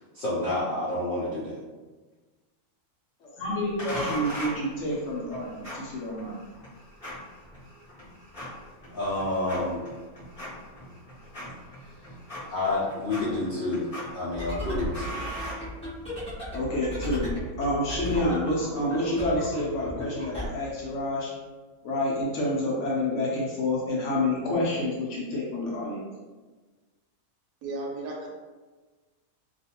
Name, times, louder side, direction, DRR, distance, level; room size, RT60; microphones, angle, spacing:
voice 1, 0.1-1.6 8.9-9.9 12.5-13.9 14.1-15.2, left 2 dB, 85° left, -7 dB, 0.4 m, -29 dB
voice 2, 3.2-6.3 16.5-17.3 17.6-21.3 21.8-26.0, left 1 dB, 65° left, -4 dB, 0.8 m, -28 dB
sound 1, 3.8-16.3, equal, 25° left, 0.9 m, -40 dB
sound 2, 14.3-20.5, equal, 5° left, 0.5 m, -36 dB
voice 3, 27.6-28.3, right 2 dB, 80° right, -1 dB, 1.1 m, -34 dB
2.5 x 2.3 x 2.8 m, 1.3 s
omnidirectional pair, 1.6 m